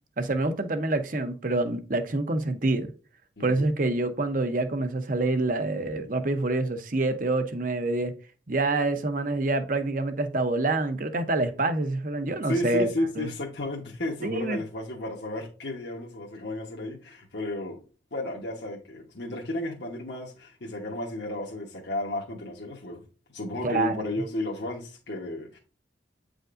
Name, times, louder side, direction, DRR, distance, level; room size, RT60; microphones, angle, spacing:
voice 1, 0.2-2.9 3.4-8.1 8.5-12.9 13.2-13.3 14.2-14.6 23.6-24.1, right 2 dB, 45° right, 0.7 m, -26 dB
voice 2, 12.2-17.8 18.1-23.0 23.3-25.6, left 1 dB, 65° left, 1.1 m, -33 dB
8.9 x 5.1 x 2.5 m
head